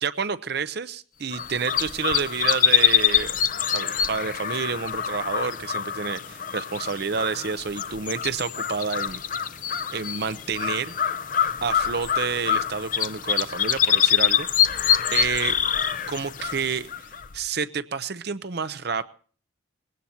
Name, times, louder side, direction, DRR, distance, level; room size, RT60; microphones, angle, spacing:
voice 1, 0.0-3.4 3.7-9.2 9.9-11.0 11.6-14.8 15.1-15.6 16.1-16.9 17.3-19.1, right 5 dB, 50° right, 14 dB, 0.6 m, -29 dB
sound 1, 1.3-17.4, left 8 dB, 40° left, 0.6 m, -25 dB
20.5 x 16.5 x 2.8 m, 0.42 s
head